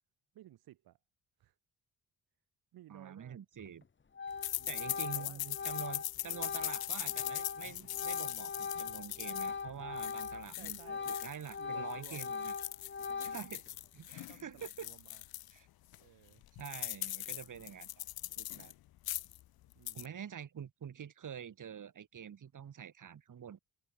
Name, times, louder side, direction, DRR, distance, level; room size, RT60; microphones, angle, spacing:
voice 1, 0.3-1.0 1.4-1.6 2.7-3.4 4.5-5.4 10.6-11.1 11.6-12.3 13.0-13.5 14.3-15.2 16.0-16.4 19.7-20.2, right 14 dB, 90° right, 2.2 m, -57 dB
voice 2, 2.9-3.8 4.7-12.5 13.2-13.6 13.9-14.9 15.5-15.7 16.6-18.0 18.4-18.7 19.9-23.6, right 8 dB, 60° right, 3.5 m, -47 dB
Organ, 3.6-3.8 4.1-10.5 10.8-13.7, left 5 dB, 30° left, 1.5 m, -41 dB
sound 1, 4.4-11.6 11.9-15.5 15.9-16.0 16.3-18.7 19.0-19.4 19.7-20.1, left 14 dB, 85° left, 1.6 m, -41 dB
cardioid pair, 80°, 36 cm